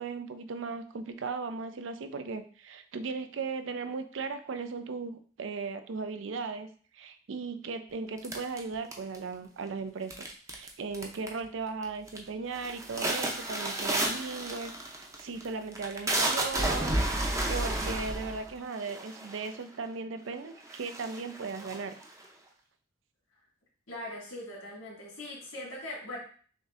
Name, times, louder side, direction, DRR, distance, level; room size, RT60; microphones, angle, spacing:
voice 1, 0.0-6.7 6.9-22.0, right 4 dB, 70° right, 9 dB, 0.5 m, -37 dB
sound 1, 8.2-9.3 10.1-10.7 10.9-11.5 11.8-12.2 12.6-19.6 20.3-20.4 20.7-22.3, right 1 dB, 15° right, 0.6 m, -32 dB
voice 2, 23.9-26.2, left 1 dB, 85° left, -4 dB, 2.1 m, -40 dB
6.2 x 2.7 x 2.5 m, 0.43 s
head